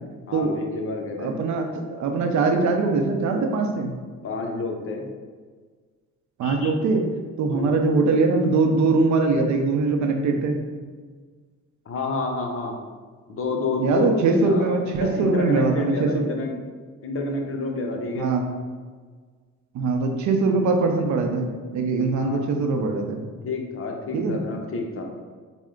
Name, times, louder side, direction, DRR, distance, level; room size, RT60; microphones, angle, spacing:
voice 1, 0.3-1.3 4.2-5.1 6.4-6.7 7.5-7.8 11.9-12.7 13.3-16.5 17.0-18.3 22.1-22.4 23.4-25.0, left 3 dB, 45° left, 1 dB, 0.7 m, -29 dB
voice 2, 1.2-3.9 6.4-7.1 7.4-10.6 13.8-16.3 18.1-18.5 19.7-23.2 24.1-24.4, right 3 dB, 70° right, 4 dB, 0.6 m, -22 dB
4.3 x 2.1 x 3.7 m, 1.5 s
cardioid pair, 90°, 30 cm